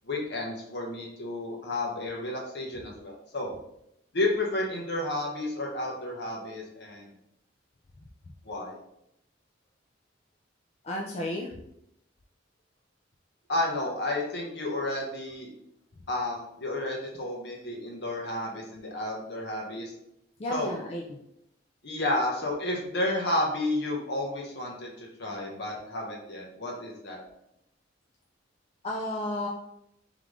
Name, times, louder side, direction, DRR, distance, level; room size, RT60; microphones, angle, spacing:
voice 1, 0.0-3.5 4.1-7.1 8.4-8.8 13.5-15.5 16.1-19.9 20.5-20.7 21.8-27.2, left 1 dB, 60° left, -1 dB, 1.1 m, -31 dB
voice 2, 10.8-11.5 20.4-21.0 28.8-29.5, left 1 dB, 30° left, -1 dB, 0.4 m, -32 dB
3.6 x 3.2 x 3.6 m, 0.79 s
head